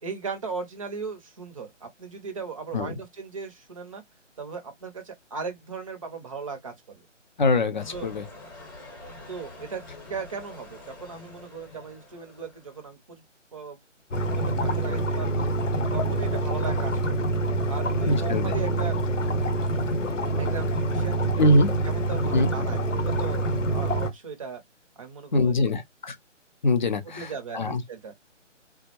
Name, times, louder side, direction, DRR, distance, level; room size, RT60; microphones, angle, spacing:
voice 1, 0.0-4.0 4.4-7.1 7.9-8.1 9.3-9.8 10.1-13.2 13.5-13.8 14.2-15.4 15.9-17.3 17.7-19.0 20.4-21.5 21.8-24.6 25.0-25.8 27.0-28.1, right 5 dB, 25° right, 0.6 m, -37 dB
voice 2, 7.4-8.3 18.1-18.5 21.4-21.7 22.3-22.5 25.3-26.2 26.6-27.3 27.5-27.8, left 1 dB, 40° left, 0.5 m, -23 dB
sound 1, 7.8-12.9, left 2 dB, 15° left, 0.9 m, -46 dB
sound 2, 14.1-24.1, right 2 dB, 75° left, 0.8 m, -26 dB
3.4 x 2.1 x 2.9 m
figure-of-eight pair, 150°, 37 cm